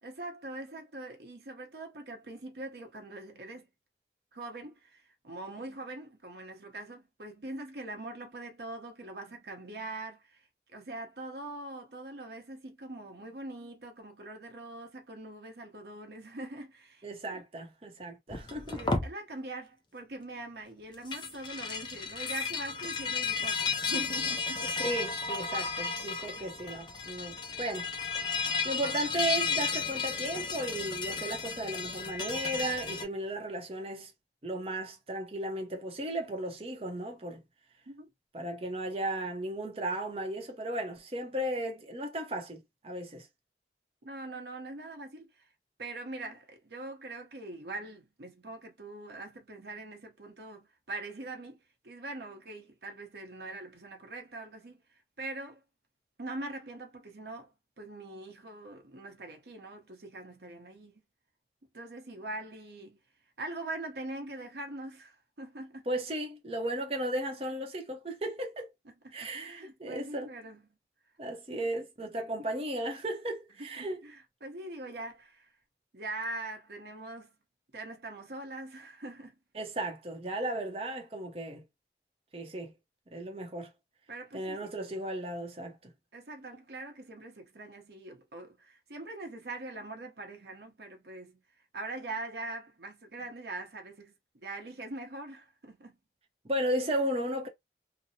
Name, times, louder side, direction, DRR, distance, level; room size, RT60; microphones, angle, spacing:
voice 1, 0.0-3.7 4.3-10.5 10.7-17.4 18.7-24.6 26.4-26.5 37.9-38.1 44.0-45.5 45.8-55.6 56.2-57.5 57.8-61.0 61.7-63.0 63.4-65.8 69.0-70.6 73.6-75.5 75.9-77.3 77.7-79.4 84.1-84.7 86.1-91.4 91.7-96.0, right 2 dB, 70° right, 0.9 m, -43 dB
voice 2, 17.0-18.8 24.6-27.9 28.6-34.1 34.4-37.4 38.3-43.3 65.9-68.7 69.1-70.3 71.2-74.0 79.5-81.6 82.3-82.7 83.1-83.7 84.3-85.9 96.5-97.5, right 1 dB, 35° right, 0.7 m, -35 dB
sound 1, 18.3-19.1 20.9-33.0, left 5 dB, 25° left, 0.4 m, -33 dB
2.9 x 2.0 x 2.7 m
head